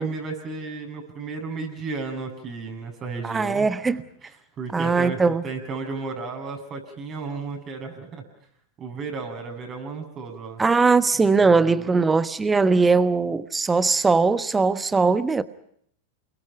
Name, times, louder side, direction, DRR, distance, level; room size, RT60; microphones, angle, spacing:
voice 1, 0.0-3.7 4.2-8.2 8.8-10.6 11.5-12.0, right 4 dB, 35° right, 7.8 m, -34 dB
voice 2, 3.2-4.0 4.7-5.4 10.6-15.4, right 4 dB, 15° right, 1.1 m, -20 dB
29.5 x 22.5 x 5.8 m
hypercardioid pair, 100°, 0 cm